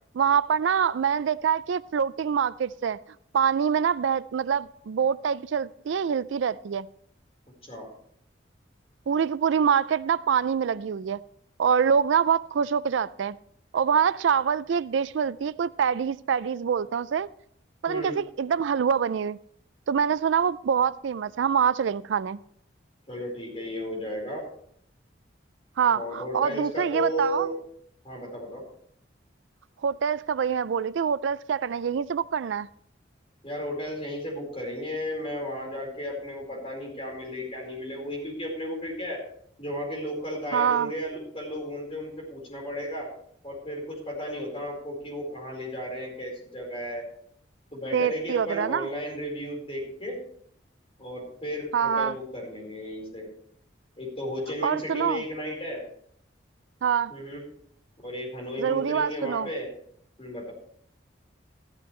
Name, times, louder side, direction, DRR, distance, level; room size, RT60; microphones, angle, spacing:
voice 1, 0.1-3.0 3.3-6.9 9.1-11.2 11.6-13.4 13.7-17.3 17.8-19.4 19.9-22.4 25.8-27.5 29.8-32.7 40.5-40.9 47.9-48.9 51.7-52.1 54.6-55.2 56.8-57.1 58.6-59.5, right 7 dB, 75° right, 0.4 m, -25 dB
voice 2, 17.8-18.2 23.1-24.4 25.9-27.5 28.0-28.6 33.4-39.2 39.6-43.1 43.4-47.0 47.7-50.2 51.0-53.3 54.0-55.8 57.1-57.4 58.0-59.7 60.2-60.5, equal, 30° left, 4.6 m, -34 dB
14.5 x 12.0 x 3.2 m
head